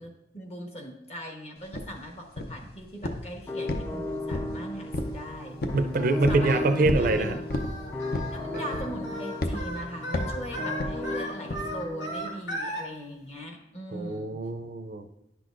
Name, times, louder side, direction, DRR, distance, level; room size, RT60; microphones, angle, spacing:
voice 1, 0.0-5.6 6.3-7.4 8.1-14.4, equal, 35° left, 2 dB, 1.1 m, -40 dB
sound 1, 1.7-1.9 2.4-2.7 3.0-3.3 3.7-4.6 4.9-5.2 5.6-5.8 6.2-6.5 6.8-7.1 7.5-7.7 8.1-8.4 8.7-9.0 9.4-9.6 10.1-10.4 10.8-11.0 11.5-11.7, left 1 dB, 55° left, 0.6 m, -30 dB
sound 2, 3.5-12.4, left 1 dB, 15° left, 0.4 m, -36 dB
voice 2, 5.7-7.4 13.9-15.1, right 2 dB, 50° right, 8 dB, 0.4 m, -25 dB
Singing, 5.9-12.8, equal, 85° left, 1.8 m, -37 dB
10.5 x 6.1 x 2.5 m, 0.86 s
head